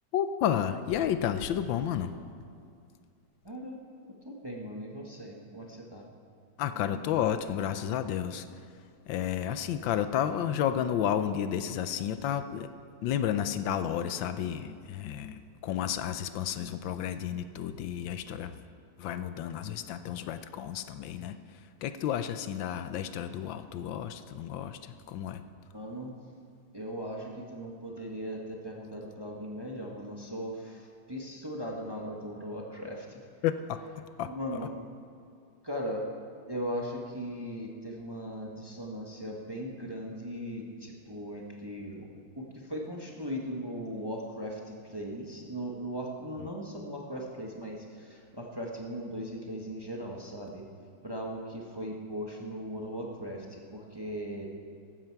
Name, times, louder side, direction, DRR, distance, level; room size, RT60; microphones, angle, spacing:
voice 1, 0.1-2.1 6.6-8.5 9.1-12.7 13.0-18.6 19.0-25.4 33.4-33.8 34.2-34.3, left 9 dB, 70° left, 11 dB, 1.3 m, -31 dB
voice 2, 3.4-6.1 25.7-26.3 26.7-33.2 34.2-34.7 35.6-36.1 36.5-42.1 42.3-50.7 51.0-54.5, equal, 15° right, -1 dB, 0.8 m, -38 dB
15.0 x 12.5 x 4.6 m, 2.4 s
omnidirectional pair, 2.3 m